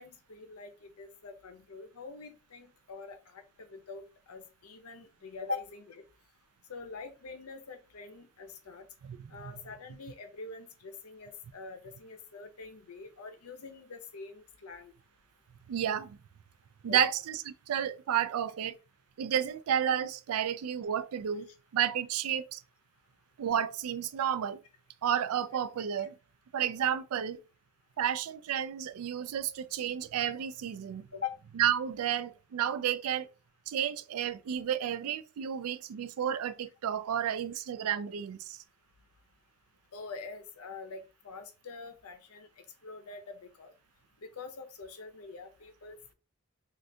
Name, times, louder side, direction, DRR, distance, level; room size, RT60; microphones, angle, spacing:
voice 1, 0.0-6.0 6.7-8.9 9.3-14.9 16.9-17.1 31.1-31.4 39.9-42.5 42.8-43.7 44.4-46.1, left 5 dB, 90° left, 0.6 m, -45 dB
voice 2, 15.7-16.2 16.8-17.1 17.7-18.8 19.2-21.5 21.7-22.6 23.4-24.6 25.0-26.1 26.5-27.4 28.0-31.0 31.6-33.3 33.7-38.6, right 9 dB, 85° right, 0.3 m, -31 dB
3.2 x 2.4 x 2.6 m
head